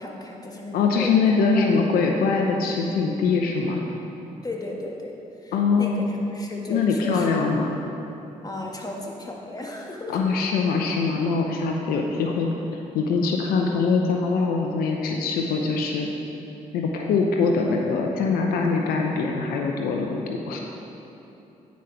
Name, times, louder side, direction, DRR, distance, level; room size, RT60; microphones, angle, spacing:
voice 1, 0.0-1.1 1.5-1.7 4.4-5.1 5.4-6.0 6.3-7.5 8.4-10.2, left 1 dB, 25° left, -1 dB, 1.7 m, -35 dB
voice 2, 0.7-3.8 5.5-6.0 6.7-7.8 10.1-12.5 12.9-16.1 16.7-20.6, left 4 dB, 85° left, 1 dB, 0.7 m, -23 dB
9.4 x 5.2 x 5.7 m, 2.9 s
supercardioid pair, 50°, 15 cm